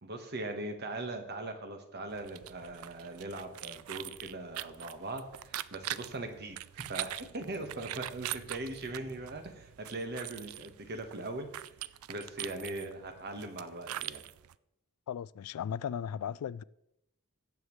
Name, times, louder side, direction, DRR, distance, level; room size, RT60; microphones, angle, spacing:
voice 1, 0.0-11.5 12.1-14.2, right 2 dB, 50° right, 1.4 m, -40 dB
sound 1, 2.1-14.5, right 13 dB, 70° right, 0.3 m, -43 dB
voice 2, 15.1-16.6, left 8 dB, 85° left, 0.3 m, -36 dB
17.0 x 7.3 x 3.2 m
head